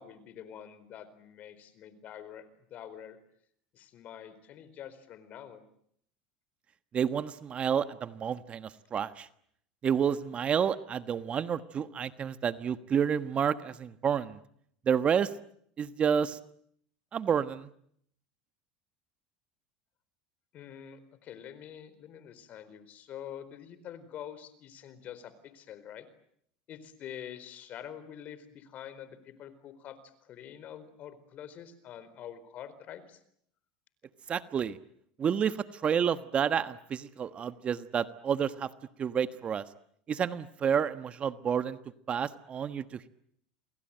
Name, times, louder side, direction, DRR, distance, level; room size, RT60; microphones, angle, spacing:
voice 1, 0.0-3.2 3.7-5.6 20.5-26.1 26.7-33.2, left 9 dB, 45° left, 15 dB, 4.5 m, -46 dB
voice 2, 6.9-9.3 9.8-14.4 14.9-15.3 15.8-16.4 17.1-17.7 34.3-34.8 35.2-38.7 39.0-39.6 40.1-41.8 42.1-43.1, right 7 dB, 35° right, 12 dB, 1.3 m, -29 dB
29.0 x 21.5 x 9.0 m, 0.69 s
supercardioid pair, 110°, 4 cm